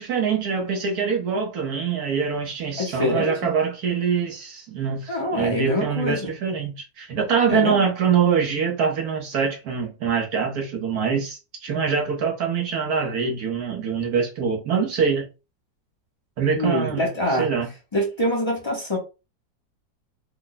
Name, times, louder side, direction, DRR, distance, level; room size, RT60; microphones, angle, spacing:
voice 1, 0.0-15.3 16.4-17.1 17.4-17.7, right 6 dB, 65° right, 1.1 m, -24 dB
voice 2, 2.8-3.3 5.1-6.3 7.5-7.8 16.5-17.5 17.9-19.0, left 1 dB, 50° left, 0.3 m, -24 dB
3.4 x 2.1 x 3.8 m
omnidirectional pair, 2.0 m